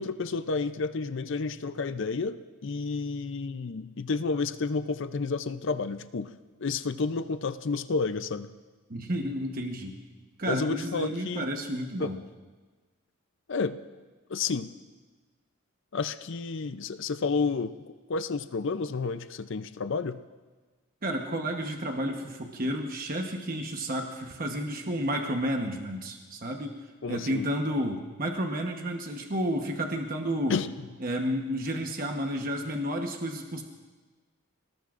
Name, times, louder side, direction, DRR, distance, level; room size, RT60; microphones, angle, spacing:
voice 1, 0.0-6.3 6.6-8.5 10.5-11.5 12.0-12.1 13.5-13.8 14.3-14.7 15.9-20.2 27.0-27.5 30.5-30.7, left 4 dB, 60° left, 11 dB, 0.5 m, -31 dB
voice 2, 8.9-9.9 10.4-12.2 21.0-26.8 27.1-30.6 31.0-33.6, equal, 40° right, 3 dB, 1.1 m, -31 dB
29.0 x 18.5 x 2.5 m, 1.4 s
head